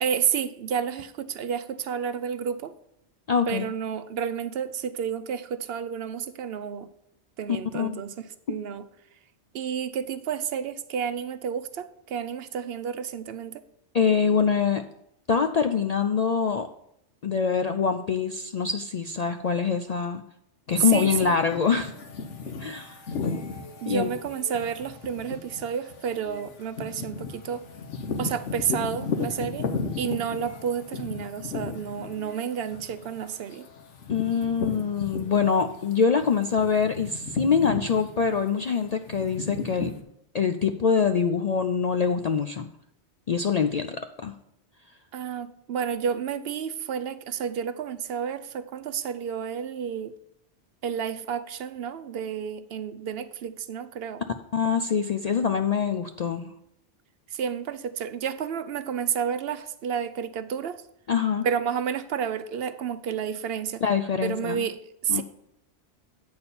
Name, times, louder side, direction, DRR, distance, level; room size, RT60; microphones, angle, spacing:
voice 1, 0.0-2.7 3.5-6.9 7.4-8.8 9.5-13.6 20.8-21.4 23.8-27.6 28.2-29.7 30.0-33.7 45.1-50.1 50.8-54.2 57.3-60.8 61.4-63.8 64.2-65.2, right 7 dB, 65° right, 12 dB, 0.7 m, -30 dB
voice 2, 3.3-3.7 7.7-8.0 13.9-14.8 15.3-16.7 17.2-20.2 20.7-21.9 22.6-23.0 23.9-24.1 34.1-39.9 40.3-42.7 43.3-44.0 44.2-44.3 54.5-56.5 61.1-61.4 63.8-64.6 65.1-65.2, left 6 dB, 55° left, 7 dB, 0.4 m, -24 dB
sound 1, 20.7-35.8 36.2-40.0, left 4 dB, 90° left, 1.3 m, -35 dB
8.6 x 4.3 x 6.9 m, 0.77 s
omnidirectional pair, 1.2 m